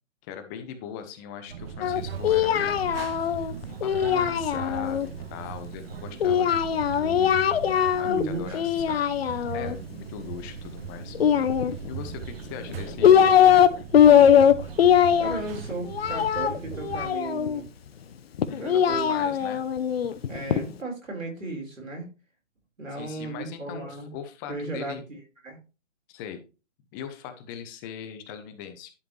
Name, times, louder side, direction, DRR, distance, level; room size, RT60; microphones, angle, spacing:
voice 1, 0.3-7.4 8.0-9.1 9.5-11.2 11.9-13.6 18.5-19.6 22.9-25.0 26.1-26.4 26.9-28.9, left 8 dB, 15° left, 9 dB, 0.7 m, -40 dB
sound 1, 1.5-17.1, right 8 dB, 50° right, 0.9 m, -39 dB
Singing, 1.8-5.1 6.2-8.2 8.5-9.8 11.2-12.1 12.7-13.7 13.9-17.6 18.4-20.6, left 9 dB, 50° left, 0.8 m, -21 dB
voice 2, 8.0-8.6 15.2-17.7 18.6-19.3 20.3-22.1 22.8-24.1 24.5-25.6, right 2 dB, 90° right, 0 dB, 4.4 m, -35 dB
11.0 x 5.0 x 3.2 m, 0.31 s
figure-of-eight pair, 140°, 38 cm